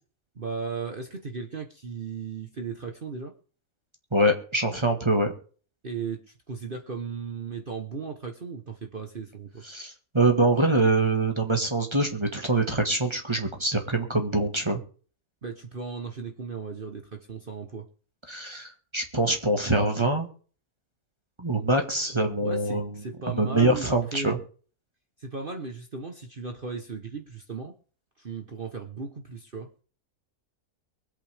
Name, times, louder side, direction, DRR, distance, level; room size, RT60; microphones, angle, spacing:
voice 1, 0.3-3.3 5.8-6.2 6.5-9.6 15.4-17.8 21.9-24.4 25.2-27.7 28.2-29.7, right 5 dB, 40° right, 4 dB, 1.3 m, -36 dB
voice 2, 4.1-5.3 9.7-14.8 18.3-20.3 21.4-22.9 23.3-24.4, right 2 dB, 20° right, 4 dB, 1.7 m, -24 dB
23.5 x 8.6 x 3.5 m, 0.42 s
omnidirectional pair, 1.6 m